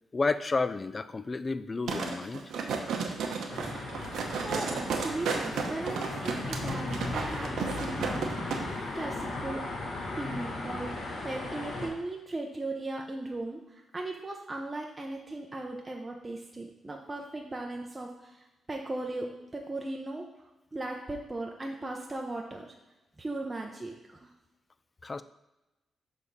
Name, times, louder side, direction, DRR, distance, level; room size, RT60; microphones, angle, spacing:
voice 1, 0.1-2.4 25.0-25.2, left 3 dB, 30° left, 13 dB, 0.3 m, -31 dB
sound 1, 1.9-8.6 9.0-9.1, right 5 dB, 85° right, 0.8 m, -33 dB
sound 2, 3.5-11.9, left 2 dB, 70° left, 1.6 m, -37 dB
voice 2, 4.1-8.6 8.9-9.7 10.2-20.2 20.7-22.8 23.2-24.3, right 2 dB, 20° right, 0 dB, 0.6 m, -38 dB
6.3 x 3.5 x 5.5 m, 0.99 s
cardioid pair, 120°, 0 cm